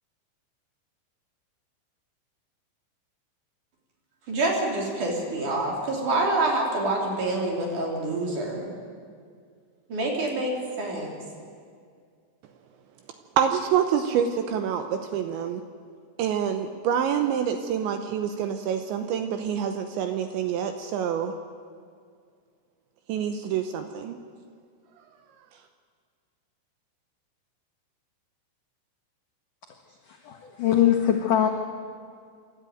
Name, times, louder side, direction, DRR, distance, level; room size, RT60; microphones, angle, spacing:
voice 1, 4.3-8.7 9.9-11.1, right 2 dB, 45° right, 0 dB, 4.3 m, -27 dB
voice 2, 13.4-15.6 16.2-21.3 23.1-24.2, right 8 dB, 75° right, 7 dB, 2.9 m, -26 dB
voice 3, 30.1-31.5, left 10 dB, 85° left, 3 dB, 1.8 m, -22 dB
27.0 x 13.0 x 9.3 m, 2.2 s
omnidirectional pair, 5.8 m